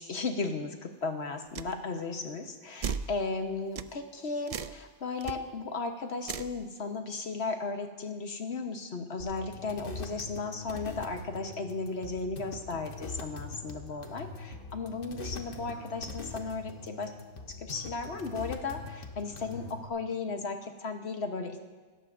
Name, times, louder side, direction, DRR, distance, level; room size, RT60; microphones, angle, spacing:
voice 1, 0.0-17.1 17.7-21.6, left 4 dB, 70° left, 5 dB, 1.4 m, -35 dB
sound 1, 1.5-1.7 2.8-3.1 3.8-3.9 4.5-4.8 5.2-5.3 6.2-6.5, right 6 dB, 55° right, 0.4 m, -35 dB
sound 2, 9.2-19.9, left 3 dB, 55° left, 1.3 m, -43 dB
26.5 x 13.5 x 2.6 m, 1.4 s
omnidirectional pair, 1.1 m